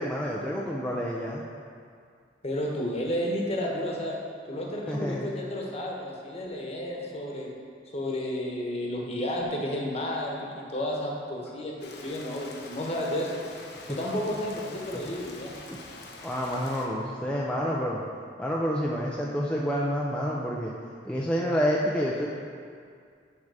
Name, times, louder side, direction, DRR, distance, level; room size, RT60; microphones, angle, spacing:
voice 1, 0.0-1.4 4.9-5.3 14.9-15.0 15.7-15.8 16.2-18.0 18.4-20.7 21.0-22.3, equal, 5° left, -4 dB, 0.5 m, -28 dB
voice 2, 2.4-4.2 4.5-7.5 7.9-13.3 13.9-15.5, left 1 dB, 35° left, -2 dB, 1.1 m, -32 dB
Rain, 11.8-16.9, left 3 dB, 65° left, 0.8 m, -45 dB
10.5 x 3.6 x 4.8 m, 2.2 s
head